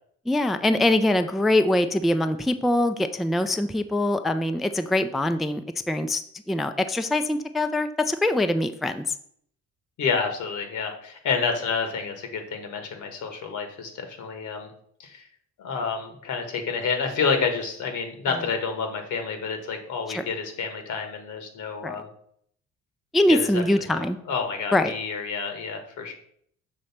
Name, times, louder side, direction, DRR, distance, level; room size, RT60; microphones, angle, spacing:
voice 1, 0.3-6.2 6.5-9.1 20.1-20.2 21.8-22.0 23.1-24.2 24.7-24.9, left 1 dB, ahead, 8 dB, 0.3 m, -23 dB
voice 2, 10.0-14.7 15.0-15.2 15.6-22.1 23.3-23.6 23.9-26.1, left 5 dB, 75° left, 5 dB, 1.4 m, -29 dB
6.4 x 3.1 x 5.8 m, 0.65 s
cardioid pair, 90°, 30 cm